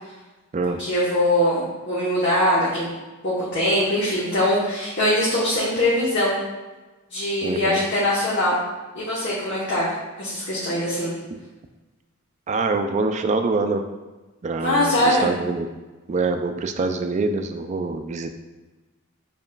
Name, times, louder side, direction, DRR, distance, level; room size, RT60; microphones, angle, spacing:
voice 1, 0.8-2.9 3.2-6.4 7.1-8.6 8.9-9.9 10.2-11.1 14.6-15.3, left 1 dB, 55° left, -8 dB, 1.0 m, -22 dB
voice 2, 7.4-7.8 12.5-13.8 14.4-15.7 16.1-18.3, right 3 dB, 35° right, 7 dB, 0.3 m, -25 dB
6.9 x 2.9 x 2.3 m, 1.2 s
head